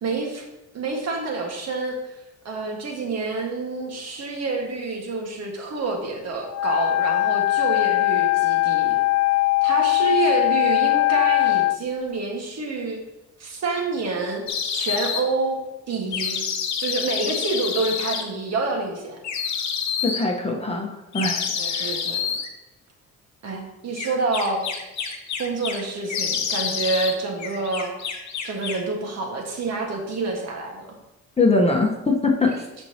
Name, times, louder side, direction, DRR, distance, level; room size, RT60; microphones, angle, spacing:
voice 1, 0.0-0.5 0.7-2.0 2.5-9.0 9.6-13.0 13.4-14.4 14.7-15.6 15.9-16.4 16.8-19.2 21.6-22.3 23.4-24.6 25.4-27.9 28.4-31.0, right 3 dB, 60° right, 1 dB, 1.7 m, -27 dB
Wind instrument woodwind instrument, 6.5-11.8, left 18 dB, 80° left, 0.5 m, -20 dB
sound 1, 14.5-15.2 16.1-18.2 19.2-20.2 21.1-22.5 24.0-25.8 26.1-27.1 27.4-28.9, left 7 dB, 65° left, 1.2 m, -28 dB
voice 2, 20.0-21.9 31.4-32.7, left 3 dB, 20° left, 1 dB, 1.1 m, -22 dB
12.0 x 4.4 x 2.9 m, 1.0 s
cardioid pair, 90°, 30 cm